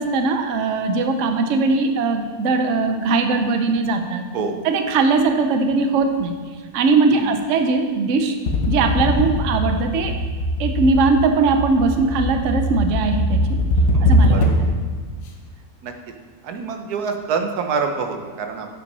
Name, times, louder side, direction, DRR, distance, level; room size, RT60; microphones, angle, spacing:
voice 1, 0.0-4.2 4.6-6.3 6.7-8.3 8.7-10.1 10.6-13.5 14.0-14.7, right 4 dB, 60° right, 6 dB, 1.0 m, -20 dB
voice 2, 7.1-7.4 13.9-14.0 14.3-14.6 15.8-15.9 16.4-18.7, right 5 dB, 90° right, 5 dB, 1.3 m, -26 dB
sound 1, 8.5-14.8, equal, 70° left, 1.2 m, -21 dB
8.3 x 5.6 x 5.4 m, 1.5 s
omnidirectional pair, 1.6 m